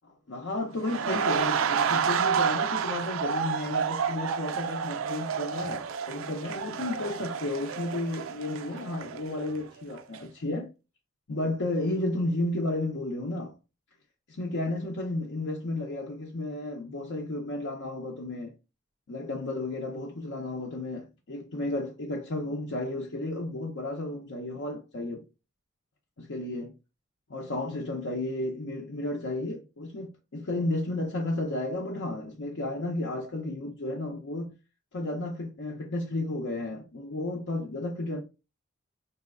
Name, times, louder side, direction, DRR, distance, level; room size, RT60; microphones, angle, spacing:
voice 1, 0.3-10.7 11.3-13.5 14.3-18.5 19.1-25.2 26.2-26.8 27.3-34.5 34.9-38.2, left 2 dB, 65° left, 0.6 m, -33 dB
sound 1, 0.8-9.7 10.0-10.2, right 7 dB, 85° right, 0.4 m, -30 dB
4.0 x 2.7 x 2.4 m
head